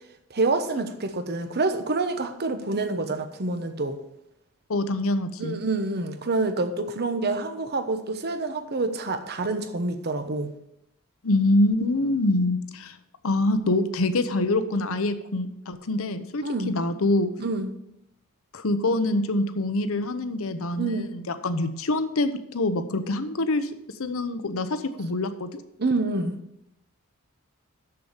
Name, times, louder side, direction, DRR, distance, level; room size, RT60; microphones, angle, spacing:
voice 1, 0.3-4.0 5.4-10.5 16.4-16.7 17.4-17.7 20.8-21.1 25.8-26.4, right 3 dB, 50° right, 9 dB, 0.9 m, -27 dB
voice 2, 4.7-5.6 11.2-13.0 13.2-17.3 18.5-23.7 24.0-25.6, left 2 dB, 70° left, 11 dB, 0.8 m, -25 dB
6.9 x 6.8 x 7.2 m, 0.81 s
head